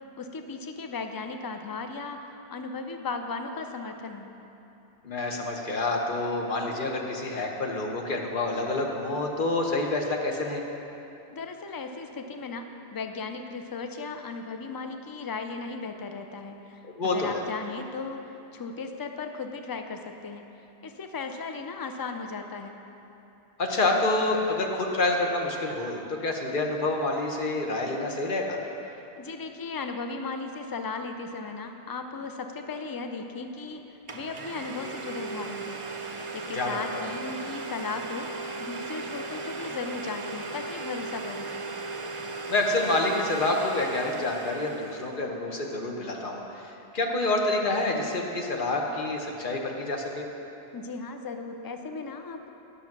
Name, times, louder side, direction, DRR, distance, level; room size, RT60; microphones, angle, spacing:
voice 1, 0.2-4.3 11.3-20.4 20.8-22.8 28.9-35.8 36.3-41.5 50.7-52.5, left 4 dB, 30° left, 6 dB, 0.4 m, -36 dB
voice 2, 5.0-10.6 16.8-17.4 23.6-28.6 36.5-37.0 42.5-50.2, left 2 dB, 55° left, 1 dB, 1.1 m, -28 dB
Domestic sounds home sounds, 33.6-33.7 34.1-45.1, right 3 dB, 35° right, 0.6 m, -37 dB
10.0 x 6.6 x 5.9 m, 2.9 s
omnidirectional pair, 1.1 m